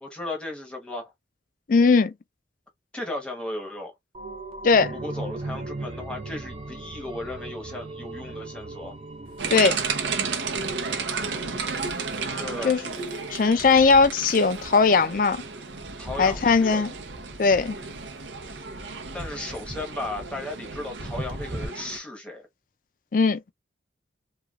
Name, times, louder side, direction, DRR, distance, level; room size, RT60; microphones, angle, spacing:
voice 1, 0.0-1.0 2.9-3.9 4.9-8.9 12.4-12.8 16.0-16.8 18.5-18.6 19.1-22.5, left 2 dB, 5° left, 0.9 m, -35 dB
voice 2, 1.7-2.1 4.6-4.9 9.5-9.8 12.6-12.8 13.3-15.4 16.2-16.9 17.4-17.8 23.1-23.4, left 4 dB, 45° left, 0.4 m, -19 dB
sound 1, 4.1-13.5 13.9-14.0, right 2 dB, 30° right, 0.4 m, -39 dB
sound 2, 9.2-21.7, right 1 dB, 50° right, 1.0 m, -43 dB
sound 3, 9.4-22.0, right 5 dB, 80° right, 0.7 m, -33 dB
3.1 x 2.3 x 2.4 m
head